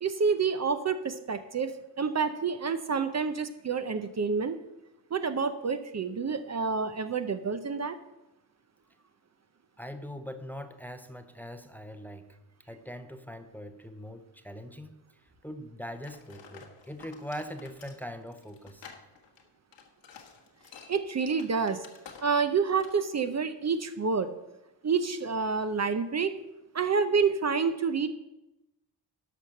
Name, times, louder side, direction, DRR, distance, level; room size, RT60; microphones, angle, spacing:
voice 1, 0.0-4.6 5.1-8.0 20.9-21.8 22.2-24.3 24.8-26.3 26.7-28.1, right 5 dB, 40° right, 9 dB, 0.7 m, -28 dB
voice 2, 9.8-12.3 12.7-15.0 15.4-18.9, equal, 5° left, 9 dB, 0.7 m, -41 dB
sound 1, 16.0-22.5 22.8-23.0, left 6 dB, 85° left, 1.7 m, -51 dB
12.0 x 5.7 x 6.4 m, 0.95 s
cardioid pair, 105°, 42 cm